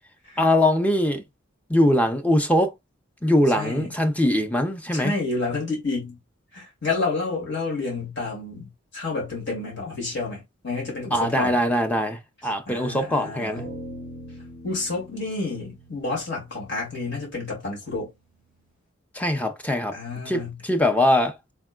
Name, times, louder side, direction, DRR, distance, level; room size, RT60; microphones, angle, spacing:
voice 1, 0.4-1.2 1.7-2.7 3.2-5.1 11.1-13.6 19.1-20.0 20.3-21.4, left 1 dB, 10° left, 0.5 m, -22 dB
voice 2, 3.5-3.9 4.9-6.2 6.5-11.6 12.7-13.6 14.6-18.1 19.9-20.6, left 3 dB, 60° left, 2.3 m, -30 dB
sound 1, 13.5-18.1, equal, 45° left, 1.7 m, -42 dB
4.3 x 3.4 x 2.2 m
head